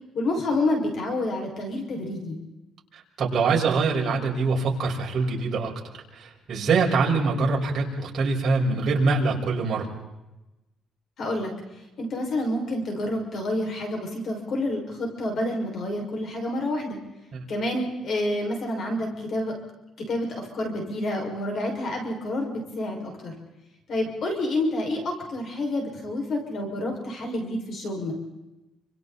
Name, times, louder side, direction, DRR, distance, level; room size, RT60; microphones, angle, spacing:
voice 1, 0.1-2.4 11.2-11.5 12.0-17.0 17.5-19.5 20.1-23.3 23.9-28.1, left 1 dB, 45° left, 2 dB, 6.1 m, -28 dB
voice 2, 3.2-5.7 6.1-9.9, right 4 dB, 45° right, -1 dB, 5.8 m, -24 dB
29.0 x 26.5 x 4.3 m, 0.99 s
cardioid pair, 150°, 0 cm